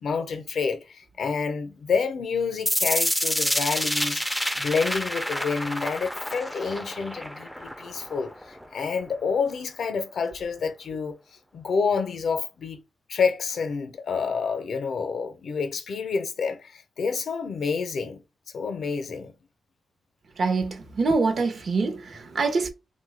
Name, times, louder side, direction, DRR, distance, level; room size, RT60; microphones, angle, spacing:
voice 1, 0.0-11.2 11.5-12.8 13.1-18.2 18.5-19.3, left 5 dB, 65° left, 0.6 m, -28 dB
sound 1, 2.7-8.6, equal, ahead, 0.4 m, -28 dB
voice 2, 20.4-22.7, right 4 dB, 55° right, 0.6 m, -25 dB
3.0 x 2.2 x 3.3 m
wide cardioid pair, 110°, 0 cm